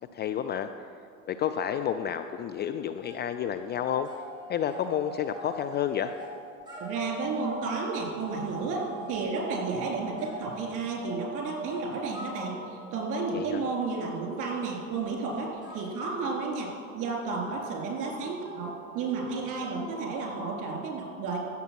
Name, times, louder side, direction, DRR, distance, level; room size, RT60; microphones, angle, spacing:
voice 1, 0.1-0.7 1.3-4.1 4.5-6.1 13.3-13.6, left 9 dB, 25° left, 9 dB, 0.4 m, -30 dB
sound 1, 1.6-3.2 3.5-20.6, right 1 dB, 10° right, 3.1 m, -44 dB
voice 2, 6.8-21.4, right 4 dB, 50° right, 0 dB, 3.7 m, -32 dB
15.5 x 7.2 x 6.0 m, 2.3 s
hypercardioid pair, 85°, 41 cm